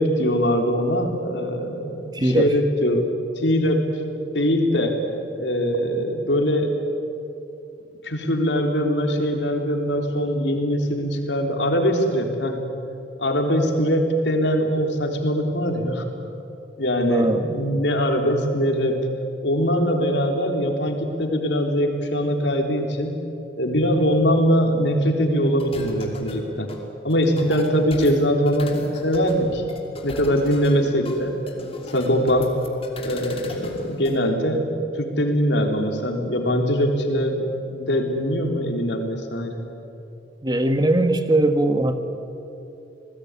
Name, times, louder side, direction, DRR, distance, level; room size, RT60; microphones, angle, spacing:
voice 1, 0.0-3.0 3.4-5.0 5.4-6.7 8.0-12.6 13.2-16.1 16.8-19.0 19.4-23.2 23.6-26.7 27.0-29.6 30.0-31.3 31.9-32.5 33.0-34.6 34.9-37.4 37.7-39.7, equal, 75° left, 3 dB, 3.7 m, -22 dB
voice 2, 2.1-2.5 17.1-17.4 40.4-41.9, right 1 dB, 25° right, 8 dB, 1.5 m, -20 dB
sound 1, 25.6-34.2, left 1 dB, 35° left, 3.1 m, -38 dB
29.0 x 19.5 x 9.8 m, 2.8 s
head